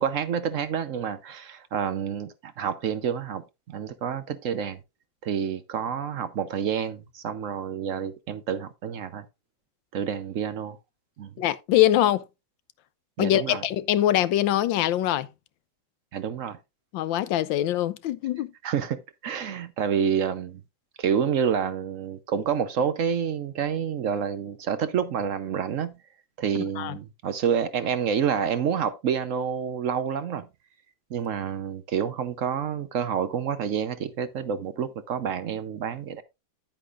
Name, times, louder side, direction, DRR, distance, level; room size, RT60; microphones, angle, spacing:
voice 1, 0.0-4.8 5.2-9.3 9.9-10.8 11.2-11.3 13.2-13.6 16.1-16.6 18.6-20.6 21.0-25.9 26.4-30.5 31.1-36.2, right 7 dB, 60° right, 0.9 m, -28 dB
voice 2, 11.4-12.2 13.2-15.3 16.9-18.5 26.8-27.0, left 13 dB, 80° left, 1.4 m, -23 dB
10.0 x 8.9 x 2.4 m
omnidirectional pair, 2.0 m